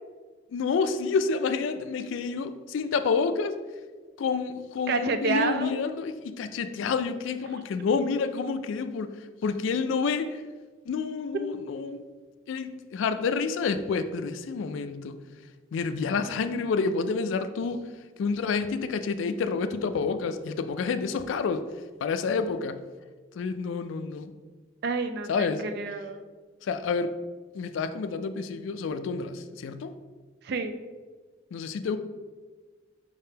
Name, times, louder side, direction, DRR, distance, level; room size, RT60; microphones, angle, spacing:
voice 1, 0.5-3.6 4.2-10.4 10.9-12.0 12.5-15.2 15.7-17.8 18.2-21.7 22.0-22.8 23.3-24.3 25.3-25.7 26.6-27.2 27.5-30.0 31.5-32.0, left 5 dB, 80° left, 10 dB, 0.3 m, -29 dB
voice 2, 4.9-5.7 24.8-26.2 30.5-30.8, right 4 dB, 55° right, 8 dB, 0.3 m, -29 dB
4.7 x 3.6 x 2.8 m, 1.4 s
head